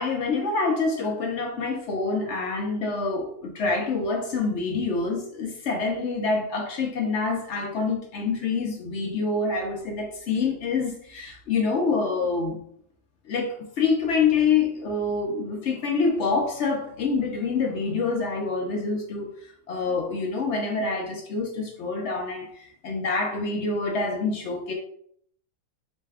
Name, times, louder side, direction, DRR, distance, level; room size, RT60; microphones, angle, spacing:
voice 1, 0.0-12.6 13.3-19.3 19.7-22.5 22.8-24.7, left 4 dB, 60° left, 2 dB, 0.8 m, -26 dB
4.1 x 2.2 x 3.4 m, 0.64 s
omnidirectional pair, 1.7 m